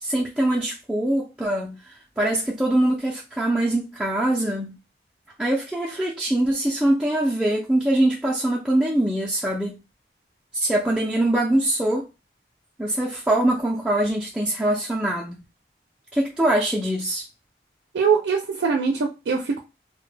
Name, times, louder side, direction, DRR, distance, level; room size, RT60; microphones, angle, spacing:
voice 1, 0.0-1.8 2.2-4.8 5.4-9.7 10.5-12.1 12.8-15.4 16.1-17.2, right 1 dB, 5° right, 0.3 m, -23 dB
voice 2, 17.9-19.6, right 5 dB, 85° right, 0.4 m, -22 dB
2.1 x 2.1 x 3.2 m
head